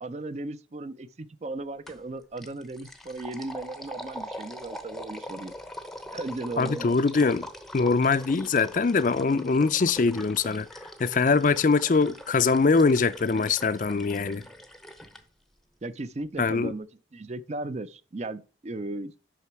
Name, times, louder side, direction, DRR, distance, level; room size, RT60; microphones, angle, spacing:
voice 1, 0.0-5.5 6.1-7.0 15.8-16.9 17.1-19.1, right 2 dB, 35° right, 0.4 m, -36 dB
sound 1, 1.9-2.1 2.4-15.2, equal, ahead, 0.7 m, -42 dB
voice 2, 6.6-7.5 7.7-10.7 11.0-14.4 16.4-16.7, left 4 dB, 45° left, 0.4 m, -23 dB
8.4 x 5.9 x 4.6 m
head